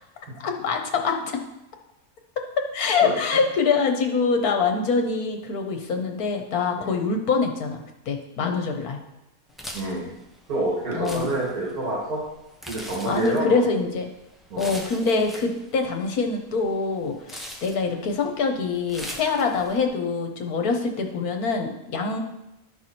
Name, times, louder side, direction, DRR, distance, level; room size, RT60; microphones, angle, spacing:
voice 1, 0.4-1.3 2.7-9.0 10.9-11.3 13.0-14.1 14.6-22.2, left 4 dB, 75° left, 4 dB, 1.5 m, -24 dB
sound 1, 9.5-19.8, equal, ahead, 0.7 m, -42 dB
voice 2, 9.7-10.1 10.5-12.2 12.7-13.6 14.5-14.8, right 2 dB, 80° right, -6 dB, 2.8 m, -28 dB
12.5 x 4.7 x 4.3 m, 0.90 s
omnidirectional pair, 1.6 m